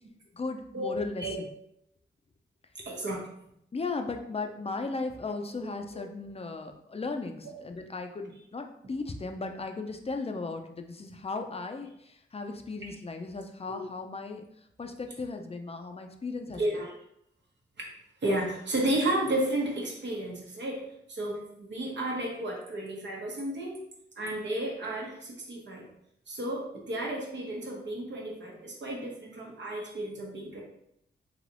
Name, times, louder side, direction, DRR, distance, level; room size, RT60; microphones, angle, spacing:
voice 1, 0.3-1.5 3.7-14.4 14.8-16.6, left 3 dB, 30° left, 5 dB, 0.5 m, -36 dB
voice 2, 2.9-3.3 5.9-6.0 7.4-7.5 13.7-13.8 16.6-16.9 17.8-17.9 18.2-20.8 21.1-23.8 24.2-25.9 26.3-30.6, right 1 dB, 70° right, -1 dB, 1.0 m, -32 dB
3.3 x 2.9 x 2.5 m, 0.75 s
supercardioid pair, 40°, 20 cm